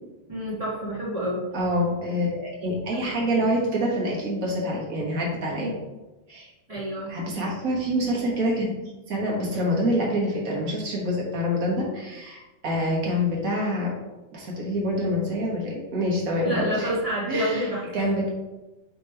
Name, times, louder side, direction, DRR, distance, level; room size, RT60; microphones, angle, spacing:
voice 1, 0.3-1.4 5.6-5.7 6.7-7.1 16.4-17.8, equal, 70° right, -7 dB, 0.3 m, -28 dB
voice 2, 1.5-5.7 6.3-6.5 7.1-8.7 9.1-13.9 14.3-16.9 17.3-18.3, equal, 50° right, -3 dB, 1.0 m, -26 dB
7.5 x 3.0 x 4.4 m, 1.1 s
omnidirectional pair, 3.4 m